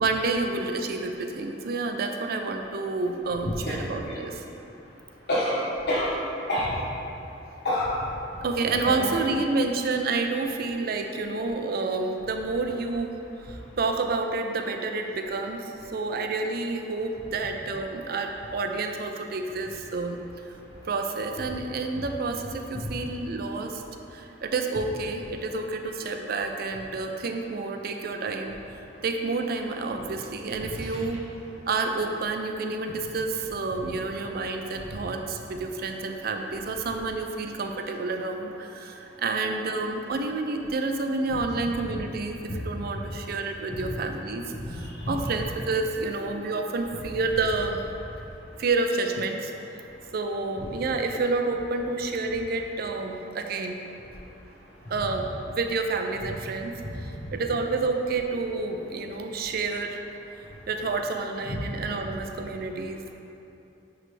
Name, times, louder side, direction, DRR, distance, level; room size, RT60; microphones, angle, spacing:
voice 1, 0.0-4.4 8.4-13.1 13.4-20.2 20.9-23.8 24.1-28.6 29.0-31.2 31.7-47.8 48.6-49.8 50.1-53.8 54.9-56.7 57.0-60.0 60.7-63.1, right 3 dB, 55° right, 4 dB, 0.5 m, -29 dB
voice 2, 4.5-9.2 13.5-13.8 20.7-20.8 22.7-22.9 24.1-24.4 28.9-29.0 30.7-31.1 34.7-35.0 38.9-39.3 41.3-41.4 41.7-41.8 42.5-42.6 42.9-43.1 43.7-43.9 44.5-45.3 48.2-48.6 49.8-49.9 54.6-54.9 56.8-57.3 59.1-59.3 60.4-60.6 61.5-61.6, left 1 dB, 65° left, -8 dB, 1.1 m, -32 dB
9.8 x 3.3 x 3.2 m, 2.8 s
head